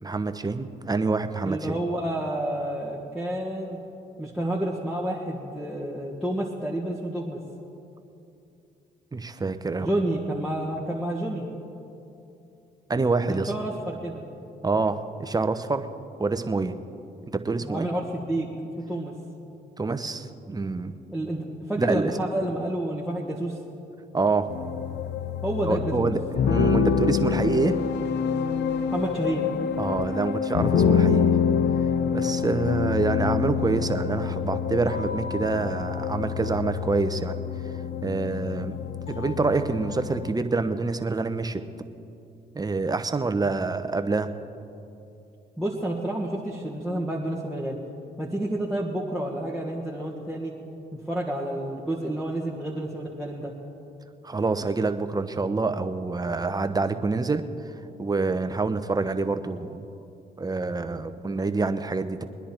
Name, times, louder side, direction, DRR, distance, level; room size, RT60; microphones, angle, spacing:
voice 1, 0.0-1.8 9.1-9.9 12.9-13.5 14.6-15.9 16.2-16.8 17.3-17.9 19.8-21.0 21.8-22.1 24.1-24.5 25.7-27.8 29.8-31.4 32.1-37.4 38.0-38.8 39.1-41.6 42.5-44.3 54.2-57.4 58.0-59.9 60.4-62.3, right 3 dB, 20° right, 9 dB, 0.9 m, -26 dB
voice 2, 1.4-3.8 4.2-7.4 9.8-11.5 13.3-14.2 17.6-18.5 18.9-19.1 21.1-23.6 25.4-26.1 28.9-29.4 45.6-47.8 48.2-50.5 50.9-53.5, right 1 dB, ahead, -3 dB, 1.8 m, -29 dB
sound 1, 24.5-40.3, left 7 dB, 65° left, 0.7 m, -26 dB
21.5 x 10.0 x 4.5 m, 2.7 s
supercardioid pair, 60°, 19 cm